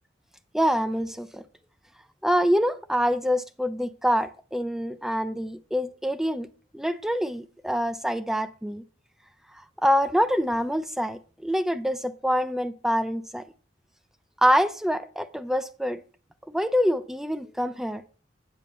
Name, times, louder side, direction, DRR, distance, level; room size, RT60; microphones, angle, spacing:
voice 1, 0.5-1.4 2.2-6.5 6.7-8.8 9.8-13.4 14.4-16.0 16.5-18.0, equal, ahead, 0.4 m, -25 dB
9.2 x 6.9 x 4.0 m
head